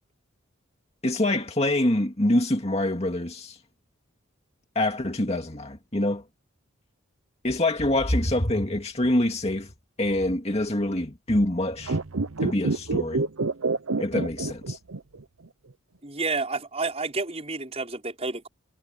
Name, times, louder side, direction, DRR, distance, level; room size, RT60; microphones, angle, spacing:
voice 1, 1.0-3.6 4.8-6.2 7.4-9.7 10.0-12.0 12.4-13.2 14.0-14.8, left 1 dB, 30° left, 2.3 m, -25 dB
sound 1, 11.8-15.2 15.5-15.6, right 3 dB, 75° right, 0.9 m, -27 dB
voice 2, 16.0-18.5, right 3 dB, 30° right, 5.7 m, -30 dB
head